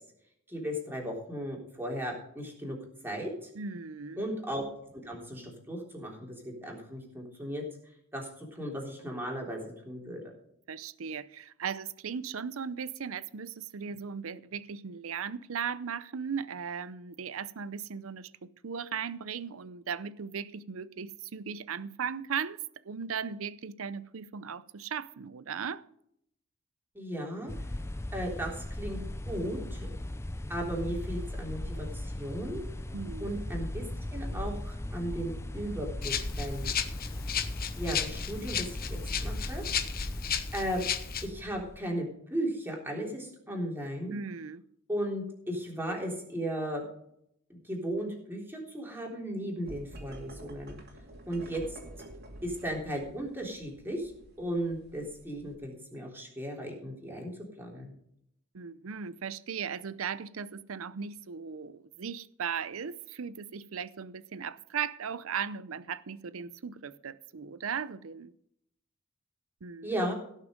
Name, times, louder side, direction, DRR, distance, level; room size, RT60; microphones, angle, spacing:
voice 1, 0.5-2.8 3.0-3.5 4.2-4.6 4.9-7.6 8.1-10.3 26.9-27.5 28.1-29.0 29.3-29.9 30.5-32.6 33.2-33.8 34.1-36.7 37.8-39.6 40.5-40.8 41.2-44.2 44.9-46.8 47.5-50.8 51.3-51.8 52.4-54.1 54.4-57.3 57.6-57.9 69.8-70.1, equal, 10° right, 3.6 m, -36 dB
voice 2, 3.5-4.2 10.7-22.6 22.8-25.8 32.9-33.3 44.1-44.6 58.5-68.3 69.6-69.9, right 6 dB, 75° right, 0.6 m, -37 dB
sound 1, 27.5-41.8, left 1 dB, 15° left, 0.5 m, -38 dB
Rattle (instrument), 36.0-41.3, left 9 dB, 45° left, 1.0 m, -34 dB
sound 2, 49.6-55.5, right 1 dB, 50° right, 2.5 m, -49 dB
17.0 x 6.6 x 5.1 m
head